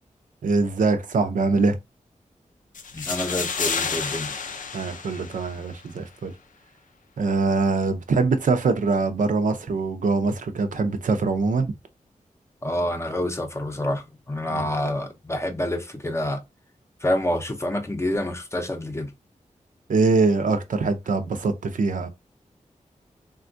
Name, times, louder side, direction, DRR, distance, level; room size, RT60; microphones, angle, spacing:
voice 1, 0.4-1.8 4.7-6.3 7.2-11.7 14.5-14.7 19.9-22.1, right 3 dB, 80° right, 0.5 m, -23 dB
sound 1, 2.7-5.8, left 5 dB, 80° left, 0.4 m, -30 dB
voice 2, 2.9-4.4 12.6-16.4 17.0-19.1, left 1 dB, 20° left, 0.6 m, -27 dB
3.5 x 2.3 x 2.5 m
wide cardioid pair, 95°, 13 cm